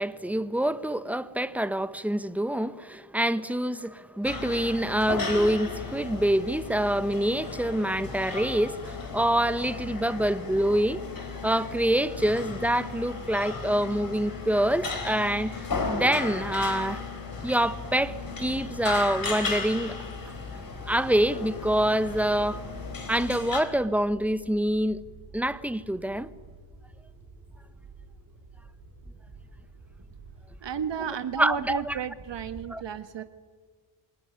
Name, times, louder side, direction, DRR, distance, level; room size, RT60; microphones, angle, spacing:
voice 1, 0.0-11.0 11.4-17.0 17.4-19.9 20.9-22.6 23.1-25.0 25.3-26.3 31.4-31.8 32.7-32.8, right 1 dB, 5° right, 1.2 m, -26 dB
sound 1, 4.2-23.6, left 4 dB, 45° left, 4.7 m, -35 dB
sound 2, 18.1-32.7, right 3 dB, 45° right, 5.2 m, -50 dB
voice 2, 30.6-33.2, right 7 dB, 60° right, 1.5 m, -33 dB
27.5 x 19.5 x 9.6 m
cardioid pair, 80°, 48 cm